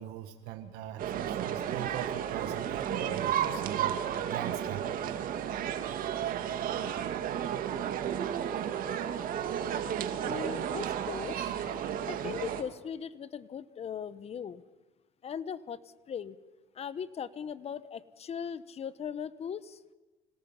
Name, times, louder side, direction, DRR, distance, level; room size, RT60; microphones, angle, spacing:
voice 1, 0.0-4.8, right 11 dB, 75° right, 7 dB, 1.4 m, -41 dB
sound 1, 1.0-12.6, right 9 dB, 60° right, 1.9 m, -33 dB
voice 2, 10.2-11.5 12.1-14.6 15.2-15.8 16.1-16.4 16.7-19.8, left 7 dB, 40° left, 16 dB, 1.1 m, -39 dB
26.0 x 18.0 x 5.8 m, 1.2 s
supercardioid pair, 95°, 16 cm